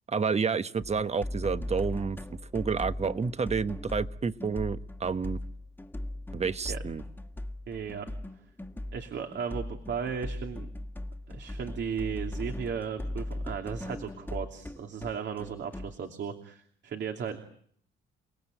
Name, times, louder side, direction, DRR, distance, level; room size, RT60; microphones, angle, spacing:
voice 1, 0.1-5.4 6.3-7.0, right 5 dB, 35° right, 12 dB, 1.2 m, -30 dB
sound 1, 0.8-16.0, left 1 dB, 10° left, 1.8 m, -38 dB
voice 2, 7.7-8.1 8.9-10.7 11.3-17.4, right 7 dB, 60° right, 5 dB, 2.8 m, -35 dB
30.0 x 18.5 x 9.1 m, 0.63 s
cardioid pair, 90°, 20 cm